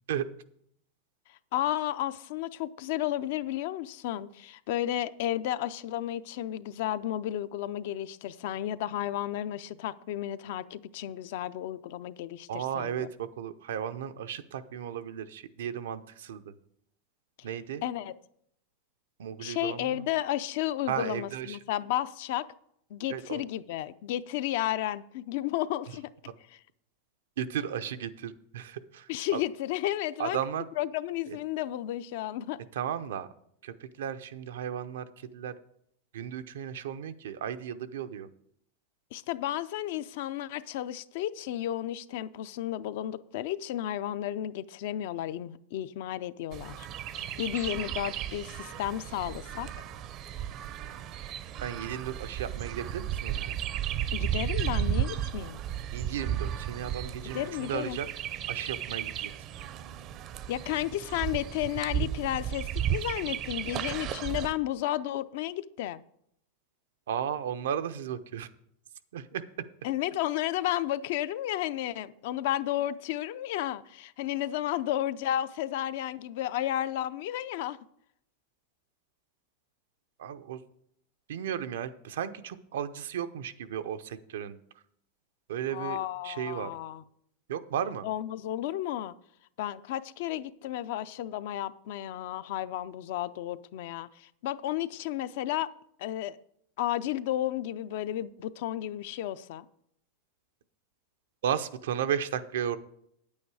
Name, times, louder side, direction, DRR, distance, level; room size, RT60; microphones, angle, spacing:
voice 1, 1.3-13.1 17.8-18.1 19.4-22.5 22.9-26.1 26.5-26.6 29.1-30.4 30.8-32.6 39.1-49.7 54.1-55.6 57.3-58.0 60.5-66.0 69.8-77.8 85.7-87.0 88.0-89.1 89.6-95.7 96.0-96.4 96.8-99.6, left 13 dB, 65° left, 0.5 m, -33 dB
voice 2, 12.5-16.5 17.4-17.8 19.2-20.1 20.9-21.6 23.1-23.4 27.4-29.4 30.2-30.6 31.3-31.4 32.7-33.3 33.6-35.5 36.1-38.3 51.6-53.6 55.9-58.1 58.5-59.3 67.1-68.5 69.1-69.4 80.2-80.6 81.3-84.6 85.5-86.0 86.2-86.7 87.5-88.1 101.4-102.8, right 9 dB, 85° right, 0.6 m, -34 dB
Chirp tweet, 46.5-64.5, right 10 dB, 40° right, 0.5 m, -34 dB
9.2 x 8.6 x 4.8 m
supercardioid pair, 135°, 0 cm